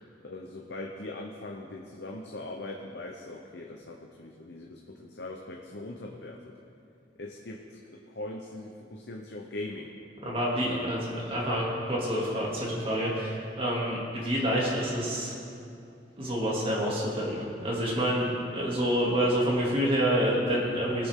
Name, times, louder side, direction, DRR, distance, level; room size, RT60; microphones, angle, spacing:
voice 1, 0.2-6.5 7.2-7.8 8.1-9.9 10.7-10.8, left 2 dB, 70° left, 0 dB, 0.8 m, -40 dB
voice 2, 10.2-15.3 16.2-21.1, equal, 30° right, -5 dB, 2.6 m, -28 dB
20.0 x 6.9 x 3.7 m, 2.5 s
head